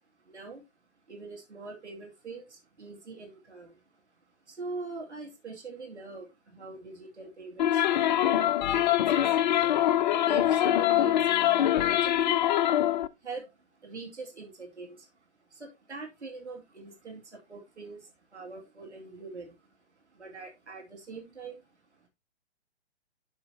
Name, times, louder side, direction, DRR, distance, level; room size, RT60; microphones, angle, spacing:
voice 1, 0.2-0.6 1.1-4.0 4.4-9.6 9.8-12.9 13.2-15.1 15.5-22.1, right 4 dB, 80° right, 1 dB, 2.6 m, -43 dB
sound 1, 7.6-13.1, left 12 dB, 40° left, 0.5 m, -24 dB
12.0 x 5.7 x 2.8 m, 0.22 s
figure-of-eight pair, 120°, 34 cm